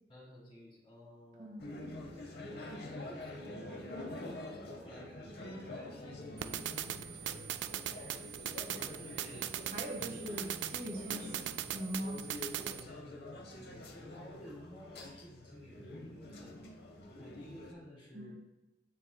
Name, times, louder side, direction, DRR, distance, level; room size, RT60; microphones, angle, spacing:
voice 1, 0.1-4.2 4.8-7.3 7.7-7.9 9.0-9.6 10.0-10.2 12.7-16.5 17.1-18.3, equal, 30° left, -4 dB, 1.8 m, -54 dB
voice 2, 1.3-1.7 9.7-12.2 18.1-18.3, equal, 50° right, 0 dB, 1.2 m, -41 dB
sound 1, 1.6-17.7, left 1 dB, 65° left, 0.8 m, -47 dB
sound 2, 6.4-12.8, right 11 dB, 80° right, 0.3 m, -40 dB
10.0 x 4.2 x 2.2 m, 1.1 s
head